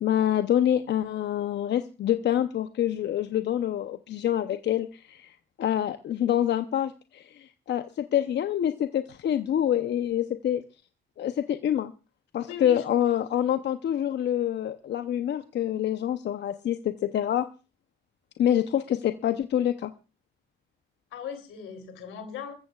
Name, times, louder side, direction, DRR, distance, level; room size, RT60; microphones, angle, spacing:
voice 1, 0.0-10.6 11.2-11.9 12.3-17.5 18.4-19.9, left 10 dB, 60° left, 9 dB, 0.8 m, -26 dB
voice 2, 12.4-12.8 21.1-22.5, left 7 dB, 85° left, 7 dB, 3.2 m, -38 dB
26.5 x 14.5 x 2.4 m, 0.32 s
cardioid pair, 90°, 20 cm